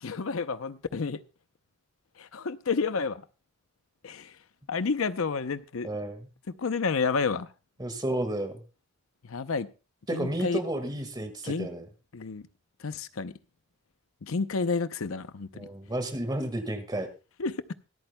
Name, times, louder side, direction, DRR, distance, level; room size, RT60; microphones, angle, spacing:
voice 1, 0.0-1.2 2.2-3.2 4.0-4.3 4.7-5.9 6.6-7.5 9.3-9.7 10.1-10.6 11.4-11.7 12.1-12.4 12.8-13.3 14.2-15.7 17.4-17.5, left 4 dB, 80° left, 13 dB, 0.7 m, -30 dB
voice 2, 5.8-6.3 7.8-8.6 10.1-11.9 15.5-17.1, right 1 dB, 20° right, 9 dB, 1.7 m, -32 dB
24.5 x 8.9 x 2.2 m, 0.32 s
head